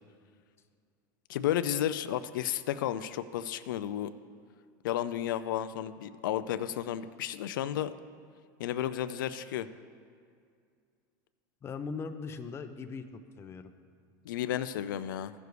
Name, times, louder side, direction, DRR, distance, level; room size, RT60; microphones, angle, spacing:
voice 1, 1.3-4.1 4.8-7.9 8.6-9.7 14.3-15.3, left 11 dB, 90° left, 12 dB, 0.4 m, -32 dB
voice 2, 11.6-13.7, left 5 dB, 25° left, 8 dB, 0.5 m, -40 dB
14.5 x 6.9 x 3.2 m, 2.2 s
supercardioid pair, 125°, 11 cm